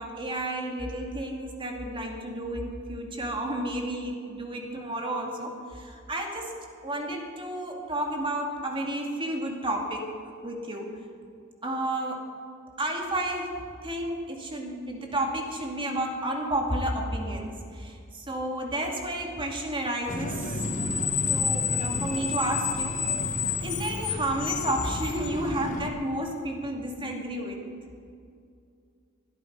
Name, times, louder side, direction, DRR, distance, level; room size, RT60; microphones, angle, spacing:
voice 1, 0.0-10.1 10.4-11.0 11.6-12.3 12.8-20.6 21.3-23.1 23.6-27.7, right 1 dB, 25° right, 1 dB, 2.3 m, -31 dB
Screech, 20.1-25.9, left 5 dB, 35° left, 1.1 m, -29 dB
20.5 x 13.0 x 5.3 m, 2.4 s
head